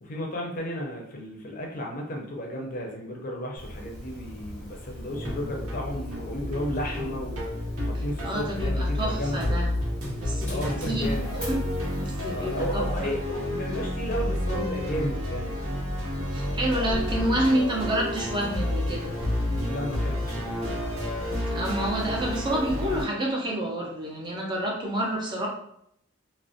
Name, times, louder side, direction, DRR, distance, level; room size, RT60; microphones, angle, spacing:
voice 1, 0.0-9.5 10.5-11.3 12.3-15.6 19.7-20.8, equal, 40° left, 0 dB, 0.5 m, -34 dB
Dog, 3.6-23.0, equal, 5° left, 0.7 m, -42 dB
sound 1, 5.1-23.0, left 1 dB, 90° right, 0.8 m, -30 dB
voice 2, 7.9-9.7 10.2-11.1 11.5-11.6 12.0-12.8 16.3-19.1 21.5-25.5, right 1 dB, 20° right, -2 dB, 0.4 m, -28 dB
2.4 x 2.0 x 2.5 m, 0.72 s
head